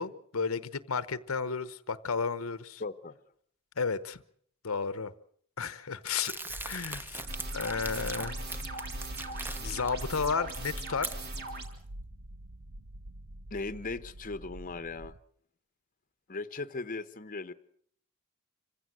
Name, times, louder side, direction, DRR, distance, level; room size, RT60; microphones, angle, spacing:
voice 1, 0.0-2.8 3.8-4.2 4.6-5.1 5.6-7.3 7.5-8.4 9.6-11.1, left 5 dB, 80° left, 15 dB, 0.9 m, -33 dB
voice 2, 2.8-3.1 13.5-15.1 16.3-17.5, left 3 dB, 40° left, 12 dB, 0.9 m, -38 dB
Crumpling crinkling, 6.1-9.9 10.3-11.6, right 2 dB, 10° right, 0.9 m, -41 dB
sound 1, 6.5-15.2, right 1 dB, 75° right, 0.9 m, -46 dB
sound 2, 7.3-11.7, right 2 dB, 50° right, 3.4 m, -39 dB
26.5 x 16.0 x 7.9 m, 0.63 s
head